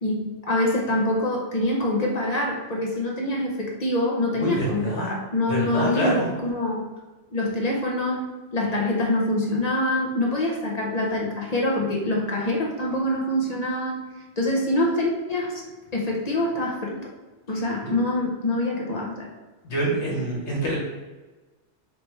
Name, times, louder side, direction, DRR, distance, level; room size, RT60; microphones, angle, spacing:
voice 1, 0.0-6.9 7.3-14.0 14.4-15.6 15.9-17.1 17.5-19.3, left 1 dB, 40° left, -2 dB, 0.7 m, -25 dB
voice 2, 4.3-5.1 5.5-6.3 17.8-17.9 19.6-20.8, equal, 70° left, -4 dB, 1.5 m, -26 dB
4.3 x 3.2 x 3.2 m, 1.2 s
omnidirectional pair, 1.2 m